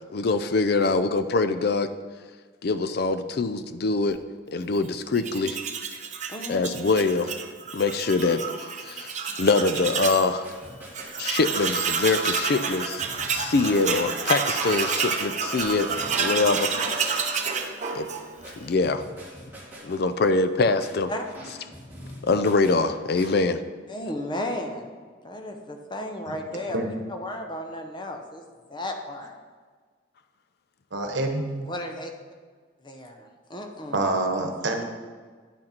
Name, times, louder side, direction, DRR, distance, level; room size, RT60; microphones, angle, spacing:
voice 1, 0.1-1.9 2.6-4.2 4.5-5.6 6.5-7.4 7.7-9.1 9.4-10.5 11.2-13.0 13.3-15.9 16.2-16.7 17.9-18.1 18.6-19.1 19.8-21.1 22.2-23.6, left 3 dB, 55° left, 10 dB, 0.4 m, -24 dB
Tools, 5.1-10.3 10.6-10.7 10.9-18.5, right 5 dB, 35° right, 0.7 m, -29 dB
voice 2, 6.3-6.8 21.1-21.2 23.9-24.9 25.2-28.4 28.7-29.4 31.7-32.1 32.8-34.0, left 1 dB, 25° left, 4 dB, 0.8 m, -34 dB
sound 1, 10.2-23.3, equal, 10° right, 2.2 m, -45 dB
voice 3, 30.9-31.7 33.9-34.8, right 2 dB, 65° right, 4 dB, 1.1 m, -26 dB
10.0 x 6.5 x 4.4 m, 1.5 s
head